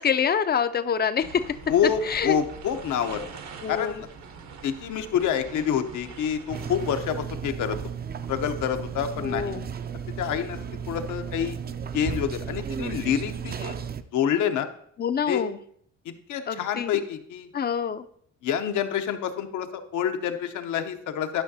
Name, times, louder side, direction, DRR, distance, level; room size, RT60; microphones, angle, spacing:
voice 1, 0.0-1.4 2.0-2.4 3.6-4.0 9.2-9.7 15.0-15.6 16.5-17.0 17.5-18.1, left 7 dB, 35° left, 12 dB, 0.4 m, -26 dB
sound 1, 1.2-7.0, right 5 dB, 65° right, 1.0 m, -43 dB
voice 2, 1.7-3.2 3.7-4.1 4.6-7.8 8.3-9.5 10.2-10.6 10.9-11.6 11.9-13.8 14.1-14.7 15.3-15.4 16.0-17.5 18.4-21.4, left 8 dB, 80° left, 7 dB, 0.8 m, -27 dB
sound 2, 6.5-14.0, right 7 dB, 35° right, 0.4 m, -34 dB
11.5 x 5.9 x 2.7 m, 0.66 s
cardioid pair, 90°, 30 cm